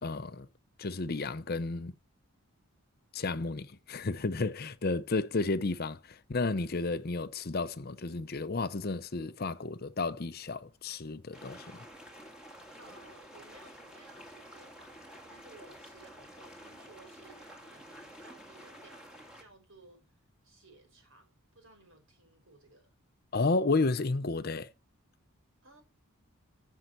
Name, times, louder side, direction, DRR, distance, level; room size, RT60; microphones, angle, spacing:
voice 1, 0.0-0.5 0.8-1.9 3.1-11.8 23.3-24.7, left 3 dB, 45° left, 0.6 m, -32 dB
sound 1, 11.3-19.4, equal, 5° right, 1.8 m, -50 dB
voice 2, 12.8-20.0 20.4-22.9 25.6-25.8, right 3 dB, 60° right, 5.0 m, -58 dB
14.0 x 5.7 x 6.7 m
head